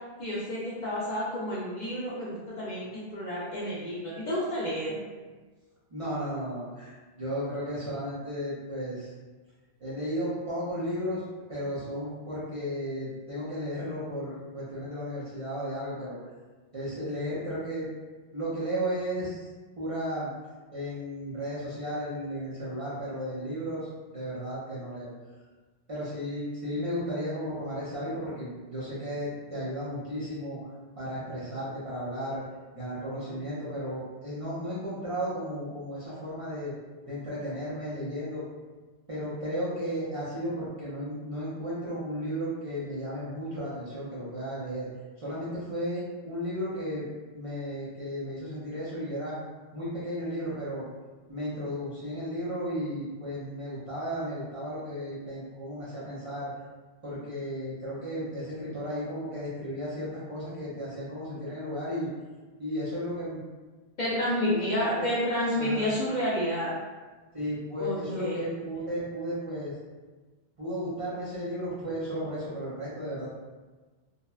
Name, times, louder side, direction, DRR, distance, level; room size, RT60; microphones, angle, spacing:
voice 1, 0.2-5.0 64.0-66.7 67.8-68.4, equal, 55° left, -7 dB, 0.5 m, -30 dB
voice 2, 5.9-9.1 9.8-11.2 11.5-16.2 16.7-17.9 18.3-19.5 19.8-20.3 20.7-25.1 25.9-30.6 31.0-32.5 32.7-36.7 37.1-38.4 39.1-44.9 45.2-47.1 47.3-49.4 49.7-50.8 51.3-56.5 57.0-62.1 62.6-63.4 64.5-65.1 65.5-65.9 67.3-69.7 70.6-73.3, equal, 40° right, -9 dB, 0.5 m, -34 dB
2.7 x 2.1 x 2.3 m, 1.3 s
omnidirectional pair, 1.1 m